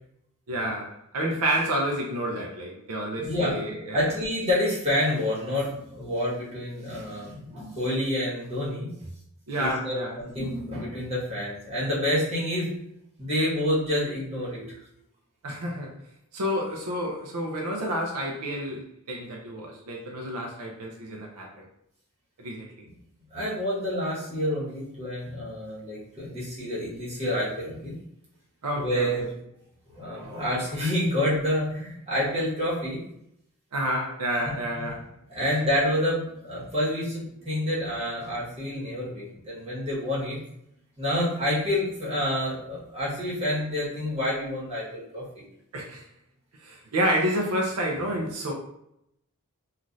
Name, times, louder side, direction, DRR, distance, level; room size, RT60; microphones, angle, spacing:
voice 1, 0.5-4.0 9.5-10.1 15.4-15.9 16.3-21.6 22.4-22.7 28.6-29.3 33.7-35.0 45.7-46.0 46.6-48.5, equal, 90° right, 0 dB, 0.5 m, -29 dB
voice 2, 3.2-3.5 3.9-8.9 9.6-12.7 13.2-14.6 23.3-28.0 28.7-29.2 29.9-33.0 34.6-34.9 35.3-40.4 41.0-45.4, left 1 dB, 30° right, -8 dB, 1.4 m, -28 dB
3.1 x 2.4 x 2.5 m, 0.77 s
head